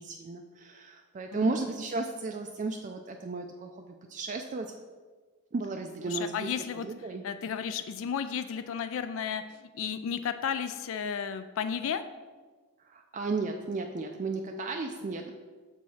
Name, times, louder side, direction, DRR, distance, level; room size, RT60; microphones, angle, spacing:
voice 1, 0.0-4.7 5.5-6.5 6.8-7.2 12.8-15.3, right 3 dB, 35° right, 4 dB, 0.3 m, -34 dB
voice 2, 6.1-6.9 7.2-12.0, left 7 dB, 60° left, 10 dB, 0.3 m, -33 dB
6.7 x 4.7 x 4.1 m, 1.4 s
head